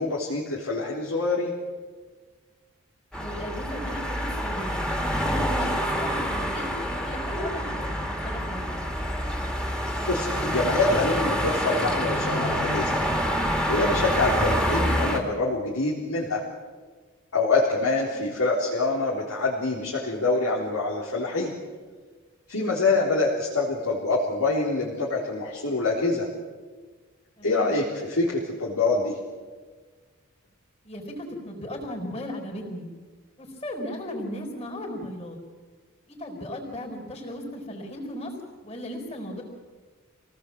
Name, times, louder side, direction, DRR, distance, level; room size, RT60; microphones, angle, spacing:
voice 1, 0.0-1.5 9.8-13.0 13.7-16.4 17.3-21.5 22.5-26.3 27.4-29.2, left 3 dB, 85° left, -6 dB, 3.9 m, -25 dB
voice 2, 3.1-4.8 5.1-5.7 5.9-7.8 8.2-8.8 18.1-18.4 27.4-27.8 30.8-32.9 33.4-35.4 36.1-38.3 38.6-39.4, left 1 dB, 25° left, 0 dB, 4.5 m, -36 dB
sound 1, 3.1-15.2, equal, 5° left, 2.1 m, -27 dB
27.0 x 18.5 x 7.6 m, 1.4 s
head